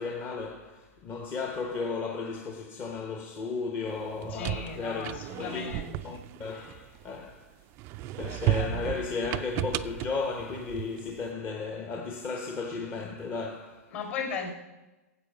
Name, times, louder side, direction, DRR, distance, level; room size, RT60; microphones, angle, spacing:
voice 1, 0.0-5.7 6.0-7.6 8.2-13.9, left 4 dB, 25° left, 0.9 m, -35 dB
sound 1, 4.0-7.3 7.8-11.2, right 15 dB, 30° right, 0.4 m, -34 dB
voice 2, 4.3-5.9 8.2-9.0 13.9-14.5, left 5 dB, 55° left, 4.9 m, -37 dB
12.5 x 8.0 x 5.4 m
hypercardioid pair, 135°, 8 cm